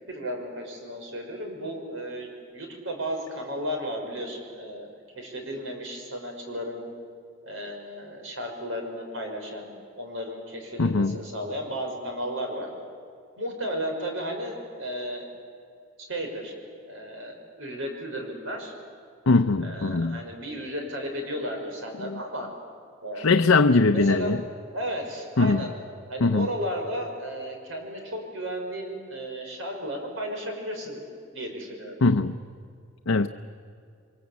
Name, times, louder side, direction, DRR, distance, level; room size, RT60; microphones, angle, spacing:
voice 1, 0.1-6.9 7.4-12.7 13.4-15.3 16.1-16.5 16.8-18.7 19.6-22.5 23.0-23.3 23.9-24.4 24.7-25.7 26.1-31.0 31.3-32.0, equal, 70° right, 2 dB, 5.9 m, -34 dB
voice 2, 10.8-11.2 19.3-20.2 22.0-22.2 23.2-24.4 25.4-25.7 26.2-26.5 32.0-32.4 33.1-33.3, left 3 dB, 80° left, 6 dB, 0.7 m, -21 dB
29.0 x 23.5 x 8.4 m, 2.3 s
head